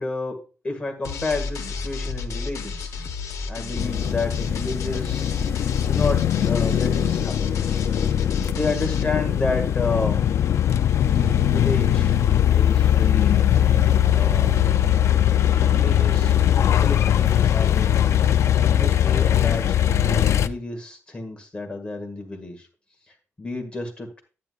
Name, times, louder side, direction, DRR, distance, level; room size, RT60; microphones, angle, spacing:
voice 1, 0.0-3.0 3.4-5.3 5.8-7.6 8.5-10.2 11.0-12.2 12.5-13.4 14.1-14.5 15.4-18.1 18.7-22.7 23.4-24.2, left 3 dB, 20° left, 2 dB, 1.9 m, -31 dB
sound 1, 1.0-9.0, left 4 dB, 85° left, 1.0 m, -32 dB
sound 2, 3.8-20.5, left 10 dB, 65° left, 0.4 m, -20 dB
10.5 x 9.5 x 2.4 m, 0.34 s
wide cardioid pair, 160°, 5 cm